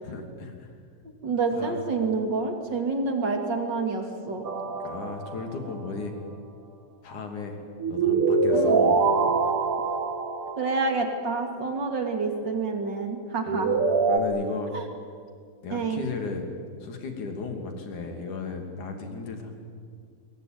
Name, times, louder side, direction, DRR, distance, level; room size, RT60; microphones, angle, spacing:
voice 1, 0.0-0.7 1.5-1.8 4.8-6.1 7.0-7.6 7.9-9.5 13.5-13.8 14.1-14.8 15.6-16.5 16.8-19.5, left 4 dB, 45° left, 4 dB, 3.7 m, -35 dB
voice 2, 1.2-4.5 8.5-8.8 10.6-13.7 14.7-14.9 15.7-16.0, right 4 dB, 30° right, 5 dB, 2.2 m, -28 dB
sound 1, 4.4-5.5 7.8-11.1 13.5-14.2, right 4 dB, 80° right, 1.2 m, -24 dB
25.0 x 23.0 x 9.4 m, 2.1 s
omnidirectional pair, 5.4 m